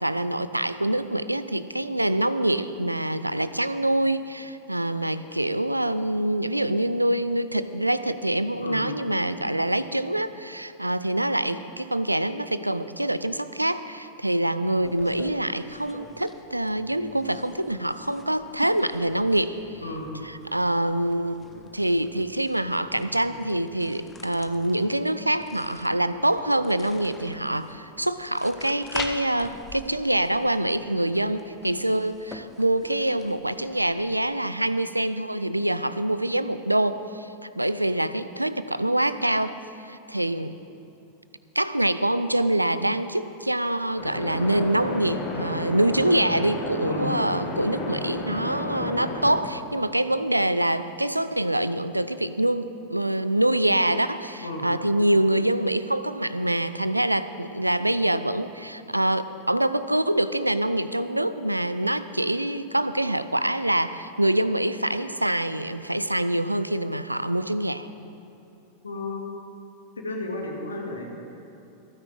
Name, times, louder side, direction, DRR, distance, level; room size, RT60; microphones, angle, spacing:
voice 1, 0.0-19.7 20.2-39.6 39.8-40.6 41.6-67.9, right 1 dB, 85° right, 14 dB, 0.4 m, -25 dB
sound 1, 14.8-34.3, left 4 dB, 20° left, 1.0 m, -45 dB
sound 2, 44.0-49.4, left 2 dB, 45° left, 3.7 m, -32 dB
voice 2, 68.8-69.3 70.0-71.1, left 2 dB, 75° left, 0 dB, 2.2 m, -33 dB
25.0 x 9.7 x 3.8 m, 2.9 s
figure-of-eight pair, 90°, 0 cm